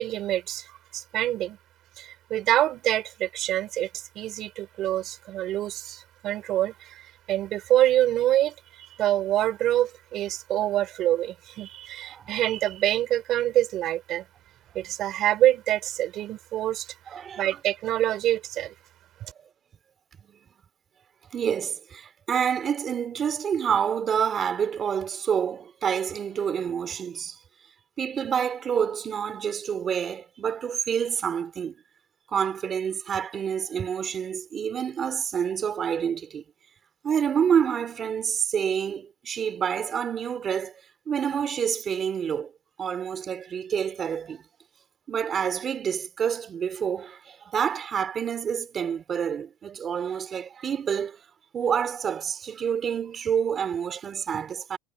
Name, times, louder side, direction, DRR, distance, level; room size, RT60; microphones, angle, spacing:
voice 1, 0.0-1.6 2.0-3.9 4.2-8.5 9.0-14.2 14.7-16.9 17.4-18.7, right 13 dB, 45° right, 4.0 m, -26 dB
voice 2, 17.1-17.5 19.2-19.5 20.3-20.4 21.3-27.4 28.0-31.7 32.3-36.4 37.0-40.7 41.1-42.5 42.8-44.4 45.1-51.2 51.5-54.8, right 7 dB, 30° right, 3.5 m, -28 dB
cardioid pair, 155°, 0 cm